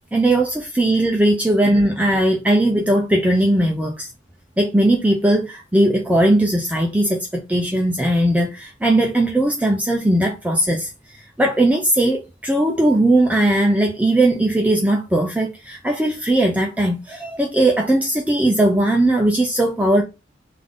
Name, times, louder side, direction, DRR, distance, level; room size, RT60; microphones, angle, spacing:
voice 1, 0.1-4.1 4.6-20.0, right 1 dB, 5° right, 0.3 m, -18 dB
3.4 x 2.5 x 3.6 m
head